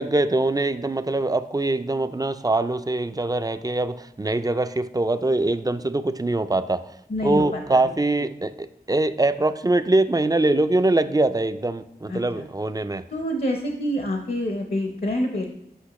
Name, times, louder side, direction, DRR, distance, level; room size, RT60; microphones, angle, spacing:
voice 1, 0.0-6.8 7.2-13.0, right 2 dB, 20° right, 0.3 m, -23 dB
voice 2, 7.1-7.9 12.1-12.5 13.1-15.5, left 1 dB, 60° left, 0.7 m, -27 dB
8.2 x 5.5 x 3.0 m
wide cardioid pair, 50°, 17 cm